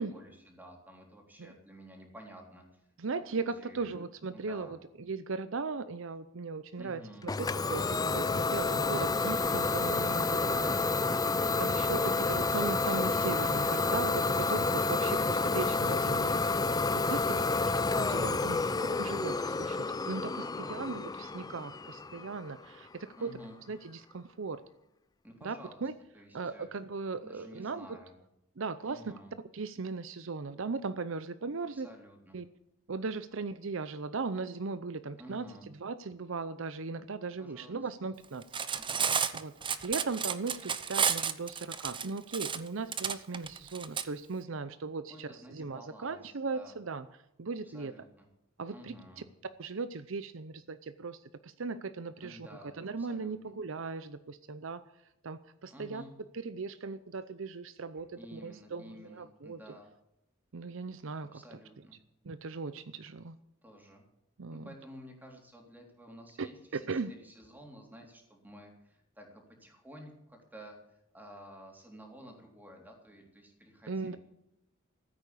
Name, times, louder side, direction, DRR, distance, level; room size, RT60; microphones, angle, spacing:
voice 1, 0.0-2.9 3.3-3.9 4.3-4.8 6.8-7.3 11.4-12.2 15.0-15.6 17.2-17.6 20.4-20.8 23.2-23.6 25.2-25.8 26.1-26.7 27.2-28.1 28.8-29.3 31.7-32.4 35.2-35.7 37.4-37.9 38.8-39.2 45.1-46.8 47.6-48.3 48.7-49.3 52.2-53.3 55.7-56.2 58.1-59.9 61.3-62.0 63.6-64.1 64.5-74.2, equal, 10° right, 1 dB, 3.5 m, -52 dB
voice 2, 3.0-11.0 11.6-16.4 16.9-17.4 18.0-18.6 19.0-19.8 20.1-20.4 20.7-23.3 23.7-24.6 25.4-25.6 25.8-25.9 26.3-27.9 28.6-29.1 29.5-31.9 32.3-32.5 32.9-38.4 39.3-39.5 39.8-47.1 47.4-47.9 48.6-48.9 49.6-52.5 52.8-54.8 55.2-56.0 56.3-59.6 60.5-61.4 62.2-63.4 64.4-64.7 66.4-66.5 66.7-67.1 73.9-74.2, right 4 dB, 65° right, 13 dB, 0.7 m, -38 dB
Idling / Domestic sounds home sounds, 7.3-22.8, left 3 dB, 20° left, 0.4 m, -30 dB
Cutlery silverware, 38.4-44.0, right 7 dB, 25° right, 0.8 m, -31 dB
15.0 x 8.8 x 8.3 m, 0.84 s
head